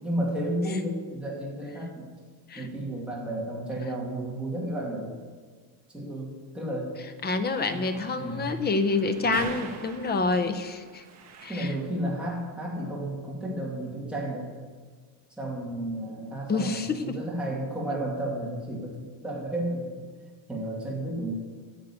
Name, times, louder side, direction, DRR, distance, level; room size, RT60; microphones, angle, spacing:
voice 1, 0.0-2.1 2.6-5.1 5.9-6.9 7.7-8.5 9.2-9.5 11.5-14.5 15.4-19.9 20.5-21.3, right 1 dB, ahead, -4 dB, 2.1 m, -32 dB
voice 2, 7.2-11.0 11.4-11.7 16.5-17.2, left 3 dB, 20° left, 10 dB, 0.6 m, -27 dB
sound 1, 7.5-12.0, right 5 dB, 35° right, 1.4 m, -44 dB
9.4 x 6.6 x 8.4 m, 1.5 s
cardioid pair, 160°, 49 cm